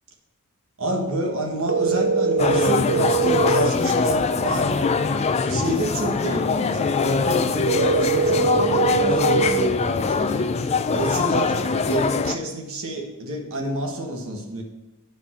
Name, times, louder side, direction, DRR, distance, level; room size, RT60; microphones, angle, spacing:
voice 1, 0.8-4.8 5.3-10.5 10.9-14.6, right 1 dB, 65° right, 2 dB, 1.5 m, -29 dB
sound 1, 1.7-3.7 7.7-9.7, right 5 dB, 85° right, 0.6 m, -21 dB
sound 2, 2.4-12.4, left 4 dB, 30° left, 0.4 m, -23 dB
8.2 x 5.2 x 6.2 m, 1.0 s
head